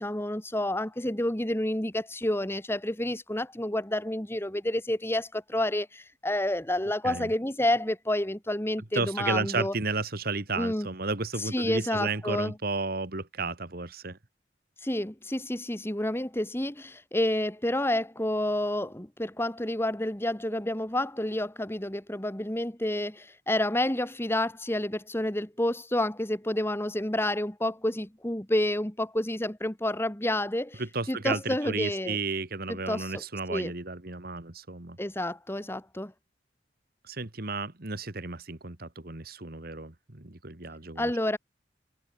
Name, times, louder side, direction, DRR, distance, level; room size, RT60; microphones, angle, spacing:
voice 1, 0.0-9.7 10.6-10.9 11.5-12.5 14.8-30.8 31.1-32.2 32.7-33.1 33.5-33.7 35.0-36.1 41.0-41.4, left 1 dB, 15° left, 1.6 m, -29 dB
voice 2, 8.9-14.2 30.8-35.0 37.0-41.1, right 3 dB, 50° right, 2.0 m, -33 dB
head